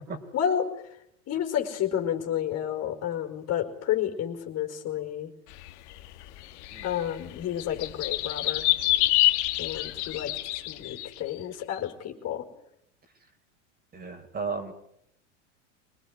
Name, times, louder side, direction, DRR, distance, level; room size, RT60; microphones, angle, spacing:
voice 1, 0.3-0.7 1.3-5.3 6.8-8.7 9.6-10.4 10.6-12.5, left 10 dB, 45° left, 4 dB, 4.9 m, -30 dB
sound 1, 5.6-11.2, left 18 dB, 70° left, 2.3 m, -27 dB
voice 2, 13.9-14.7, right 4 dB, 25° right, 5 dB, 5.0 m, -34 dB
25.5 x 20.0 x 9.7 m, 0.73 s
supercardioid pair, 110°, 36 cm